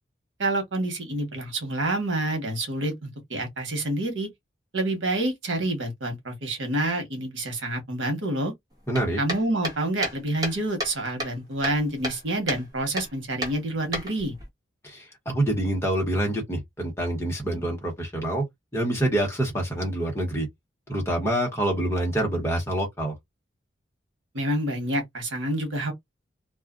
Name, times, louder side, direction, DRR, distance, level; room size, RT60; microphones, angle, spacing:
voice 1, 0.4-4.3 4.7-8.5 9.2-14.3 24.3-25.9, right 1 dB, 85° right, 1.1 m, -28 dB
voice 2, 8.9-9.2 14.8-18.4 18.7-20.5 20.9-23.1, right 1 dB, 15° left, 1.1 m, -26 dB
sound 1, 8.9-10.9 11.2-12.2 12.5-12.6 13.0-13.1 13.4-14.4, equal, 20° right, 0.9 m, -31 dB
2.4 x 2.4 x 2.4 m
head